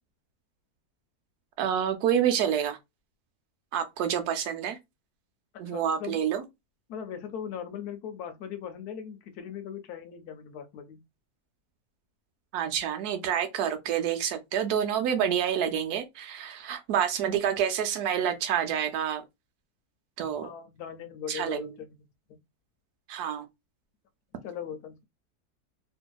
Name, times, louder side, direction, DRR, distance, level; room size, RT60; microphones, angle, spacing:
voice 1, 1.6-2.8 3.7-4.8 5.6-6.4 12.5-19.2 20.2-20.5 21.3-21.7 23.1-23.5, right 9 dB, 85° right, 1.2 m, -28 dB
voice 2, 5.5-6.2 6.9-11.0 20.4-22.0 22.3-22.4 24.4-25.0, left 8 dB, 85° left, 1.2 m, -39 dB
2.9 x 2.6 x 2.3 m
omnidirectional pair, 1.6 m